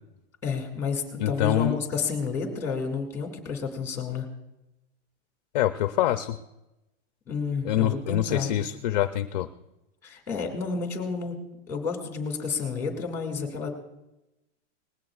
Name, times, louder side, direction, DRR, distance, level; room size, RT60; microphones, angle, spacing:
voice 1, 0.4-4.3 7.3-8.5 10.0-11.4 11.7-13.7, left 5 dB, 5° left, 3 dB, 2.0 m, -30 dB
voice 2, 1.2-1.8 5.5-6.4 7.6-9.5, left 12 dB, 40° left, 10 dB, 0.4 m, -25 dB
19.5 x 16.0 x 2.4 m, 0.95 s
supercardioid pair, 165°, 37 cm